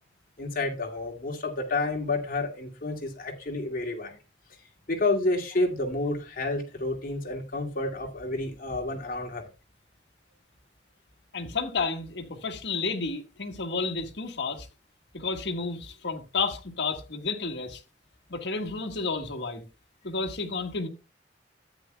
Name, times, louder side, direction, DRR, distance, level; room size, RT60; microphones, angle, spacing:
voice 1, 0.4-4.2 4.9-9.5, left 2 dB, 50° left, 2.3 m, -30 dB
voice 2, 11.3-14.7 15.1-17.8 18.3-19.6 20.0-20.9, left 4 dB, 70° left, 1.7 m, -31 dB
13.5 x 9.4 x 2.2 m
head